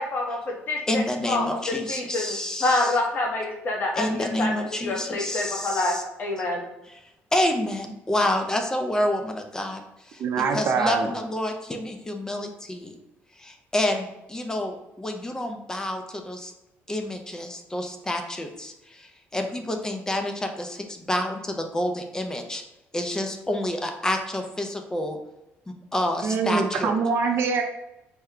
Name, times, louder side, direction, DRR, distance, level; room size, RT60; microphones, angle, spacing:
voice 1, 0.0-6.6, left 2 dB, 45° left, 0 dB, 0.9 m, -27 dB
voice 2, 0.9-3.0 4.0-6.0 6.9-7.0 7.3-10.2 10.5-12.9 13.4-16.5 16.9-22.6 22.9-25.2 25.9-26.9, left 1 dB, 15° left, 5 dB, 0.4 m, -28 dB
voice 3, 10.2-11.1 26.2-27.6, right 5 dB, 55° right, 4 dB, 0.5 m, -24 dB
4.3 x 2.2 x 3.6 m, 0.92 s
cardioid pair, 130°, 5 cm